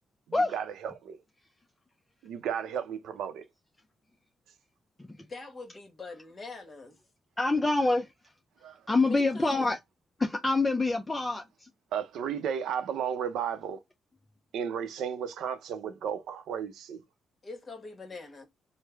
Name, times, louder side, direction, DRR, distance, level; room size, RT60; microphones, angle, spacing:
voice 1, 0.5-1.2 2.2-3.4 8.6-8.8 11.9-13.8 14.5-17.0, right 8 dB, 80° right, 0.6 m, -33 dB
voice 2, 5.3-7.0 9.0-9.7 17.4-18.5, left 3 dB, 35° left, 1.2 m, -43 dB
voice 3, 7.4-8.1 8.9-9.8 10.2-11.7, left 3 dB, 15° left, 0.4 m, -26 dB
3.2 x 2.1 x 3.3 m
cardioid pair, 90°, 0 cm